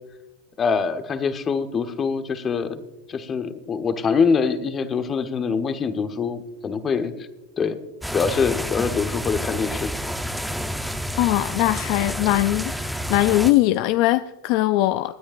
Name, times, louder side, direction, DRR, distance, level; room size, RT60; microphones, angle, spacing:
voice 1, 0.6-2.8 3.1-7.1 7.6-7.8 8.1-9.9, left 5 dB, 30° left, 1.2 m, -24 dB
sound 1, 8.0-13.5, equal, ahead, 0.8 m, -29 dB
voice 2, 11.2-15.2, left 16 dB, 55° left, 0.4 m, -21 dB
25.0 x 9.8 x 2.6 m
hypercardioid pair, 105°, 0 cm